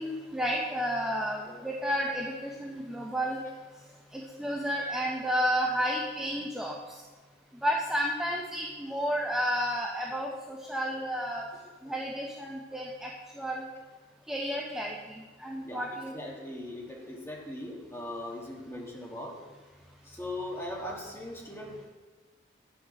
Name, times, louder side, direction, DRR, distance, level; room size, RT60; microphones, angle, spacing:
voice 1, 0.0-3.4 4.1-7.0 7.6-11.5 11.8-13.7 14.3-16.1, equal, 5° right, -2 dB, 0.6 m, -31 dB
voice 2, 15.6-19.4 20.0-21.9, left 1 dB, 15° left, -2 dB, 1.5 m, -40 dB
9.6 x 6.2 x 5.2 m, 1.3 s
head